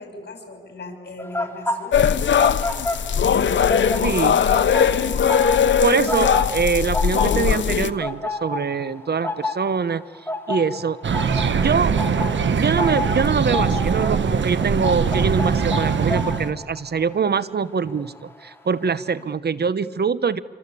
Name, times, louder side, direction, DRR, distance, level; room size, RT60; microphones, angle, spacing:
voice 1, 0.0-2.2 4.0-5.4 11.4-11.5, left 2 dB, 65° left, 4 dB, 6.5 m, -38 dB
sound 1, 1.2-3.4 3.7-18.5 18.8-19.1, left 2 dB, 10° left, 3.1 m, -30 dB
sound 2, 1.9-7.9, left 7 dB, 90° left, 0.9 m, -19 dB
voice 2, 4.0-4.4 5.8-10.0 10.5-11.0 11.5-12.0 12.5-20.4, right 5 dB, 60° right, 16 dB, 1.0 m, -23 dB
sound 3, 11.0-16.5, right 6 dB, 85° right, 1.4 m, -22 dB
26.5 x 25.5 x 8.5 m, 1.5 s
cardioid pair, 65°, 19 cm